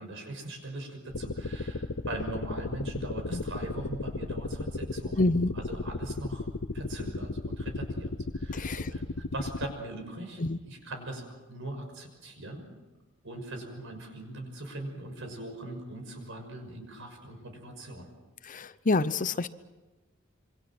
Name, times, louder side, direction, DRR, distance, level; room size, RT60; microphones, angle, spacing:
voice 1, 0.0-5.3 5.5-6.5 6.7-12.7 13.2-18.1, right 2 dB, 65° right, 5 dB, 6.1 m, -41 dB
sound 1, 1.1-9.7, left 3 dB, 60° left, 0.9 m, -35 dB
voice 2, 5.2-5.5 8.5-8.9 10.4-10.6 18.4-19.5, left 2 dB, 40° left, 14 dB, 0.8 m, -27 dB
27.0 x 25.0 x 6.2 m, 1.2 s
head